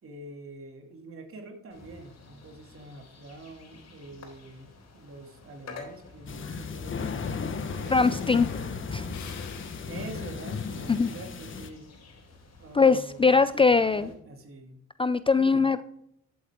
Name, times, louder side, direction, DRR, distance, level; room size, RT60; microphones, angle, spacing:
voice 1, 0.0-8.8 9.9-11.9 12.6-14.8 15.4-15.7, right 2 dB, 45° right, 4 dB, 2.5 m, -46 dB
sound 1, 1.7-14.1, left 3 dB, 60° left, 3.8 m, -50 dB
sound 2, 6.3-11.7, left 5 dB, 40° left, 1.2 m, -35 dB
Breathing, 7.5-11.8 12.3-12.6, left 7 dB, 75° left, 1.8 m, -50 dB
voice 2, 7.9-8.5 8.9-9.0 10.9-11.1 12.7-14.1 15.0-15.8, left 4 dB, 20° left, 13 dB, 0.4 m, -21 dB
12.0 x 8.0 x 3.6 m, 0.73 s
cardioid pair, 90°, 30 cm